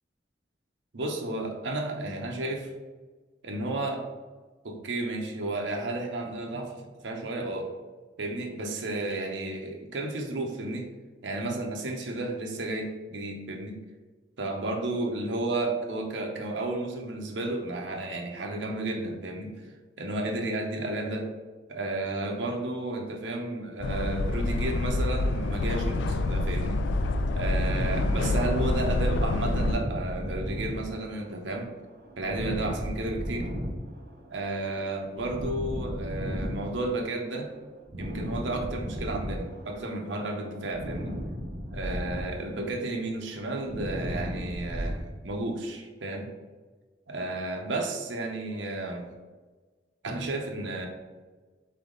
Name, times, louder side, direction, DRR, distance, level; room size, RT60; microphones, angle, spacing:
voice 1, 0.9-2.7 3.4-4.0 4.6-7.7 8.2-10.9 11.2-13.8 14.4-19.5 20.0-21.3 21.7-26.8 27.3-31.7 32.2-33.5 34.3-37.5 38.0-41.1 41.7-46.3 47.1-49.1 50.0-50.9, right 2 dB, 90° right, 2 dB, 0.8 m, -32 dB
sound 1, 23.8-29.7, left 2 dB, 80° left, 0.3 m, -27 dB
sound 2, 27.4-40.0 40.3-45.0, equal, 50° right, 0.8 m, -36 dB
4.0 x 3.4 x 3.8 m, 1.3 s
head